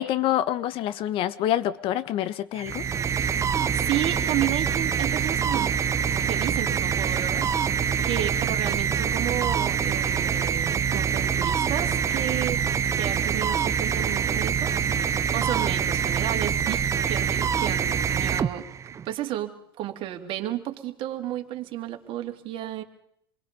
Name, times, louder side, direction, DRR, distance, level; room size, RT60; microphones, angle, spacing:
voice 1, 0.0-2.8, left 12 dB, 50° left, 15 dB, 1.3 m, -26 dB
sound 1, 2.5-19.1, right 7 dB, 25° right, 0.8 m, -25 dB
voice 2, 3.7-5.7 6.2-7.5 8.0-12.6 12.9-18.7 19.0-22.8, right 13 dB, 45° right, 4 dB, 2.7 m, -32 dB
27.5 x 21.5 x 5.4 m, 0.71 s
hypercardioid pair, 95°, 12 cm